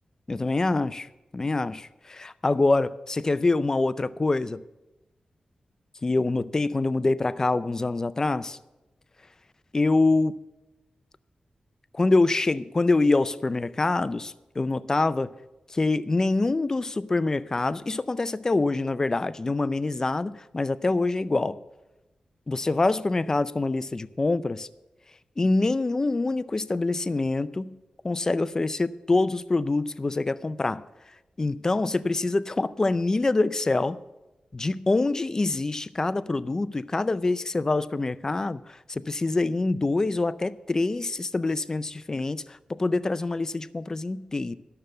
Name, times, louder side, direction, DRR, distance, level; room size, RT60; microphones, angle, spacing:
voice 1, 0.3-1.1 1.3-4.6 6.0-8.6 9.7-10.3 11.9-15.3 15.7-21.6 22.5-24.7 25.4-27.7 28.0-30.8 31.4-34.0 34.5-44.5, left 3 dB, 25° left, 15 dB, 0.4 m, -25 dB
12.0 x 6.7 x 7.7 m, 1.0 s
wide cardioid pair, 160°, 2 cm